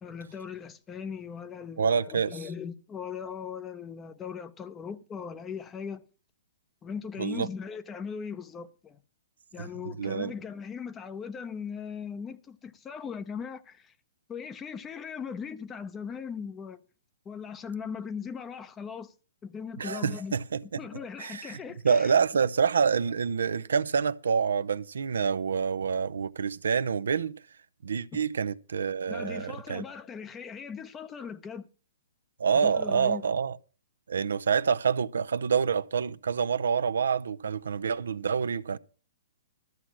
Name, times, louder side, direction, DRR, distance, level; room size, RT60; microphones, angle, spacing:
voice 1, 0.0-6.0 6.8-9.0 9.5-13.9 14.3-16.8 17.2-19.1 19.4-20.3 20.6-22.1 22.4-22.5 28.1-28.2 29.1-31.7 32.6-33.2, left 6 dB, 15° left, 0.8 m, -39 dB
voice 2, 1.8-2.3 7.2-7.5 9.6-10.3 19.8-20.6 21.2-21.6 21.8-27.4 27.8-29.8 32.4-33.6 34.1-38.8, right 6 dB, 85° right, 0.6 m, -27 dB
13.0 x 6.2 x 7.3 m
hypercardioid pair, 140°, 0 cm